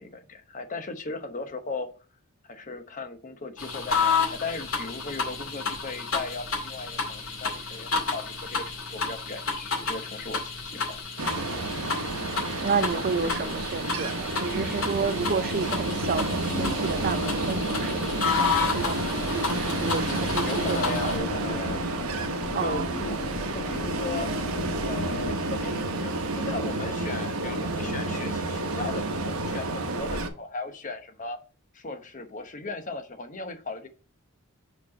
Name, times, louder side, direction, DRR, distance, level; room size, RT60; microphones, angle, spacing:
voice 1, 0.0-1.9 2.5-11.0 13.2-13.5 20.0-21.8 22.2-24.3 24.8-31.4 31.7-33.9, left 3 dB, 35° left, 0.9 m, -37 dB
sound 1, 3.6-21.2, left 5 dB, 65° left, 2.3 m, -31 dB
Ocean, 11.2-30.3, right 2 dB, 80° right, 1.1 m, -30 dB
voice 2, 12.6-21.2 22.5-23.2, right 5 dB, 40° right, 0.4 m, -31 dB
sound 2, 16.5-25.3, left 2 dB, 5° left, 2.1 m, -38 dB
4.9 x 4.4 x 6.0 m
head